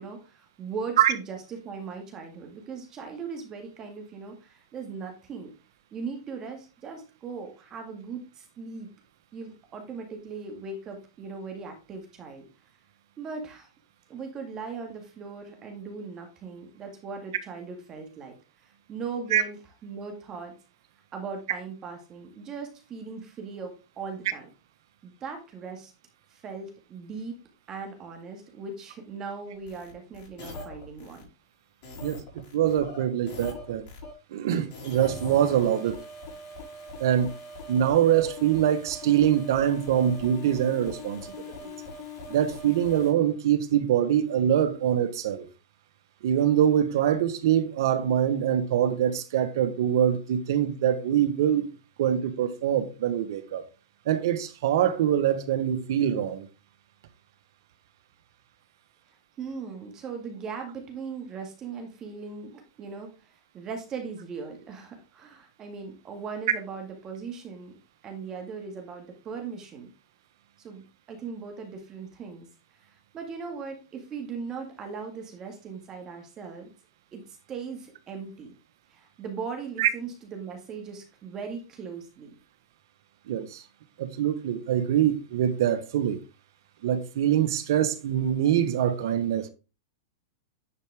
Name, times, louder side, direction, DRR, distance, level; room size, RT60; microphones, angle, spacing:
voice 1, 0.0-5.5 5.9-8.9 9.3-12.5 13.2-13.7 14.1-18.3 18.6-20.5 21.1-24.5 25.0-25.9 26.3-27.4 27.7-31.3 59.4-67.7 68.0-69.9 70.6-72.5 72.9-76.7 77.1-78.5 78.9-82.3, right 5 dB, 25° right, 1.9 m, -39 dB
sound 1, 29.7-31.2 31.8-34.1 34.7-43.1, left 2 dB, 45° left, 4.6 m, -42 dB
voice 2, 32.0-33.9 34.3-36.0 37.0-37.3 37.7-41.3 41.6-41.7 42.3-45.5 46.2-51.7 52.0-53.6 54.1-56.5 79.8-79.9 83.3-83.6 84.0-86.2 86.8-89.5, right 10 dB, 65° right, 1.2 m, -24 dB
10.0 x 4.5 x 3.5 m
hypercardioid pair, 140°, 2 cm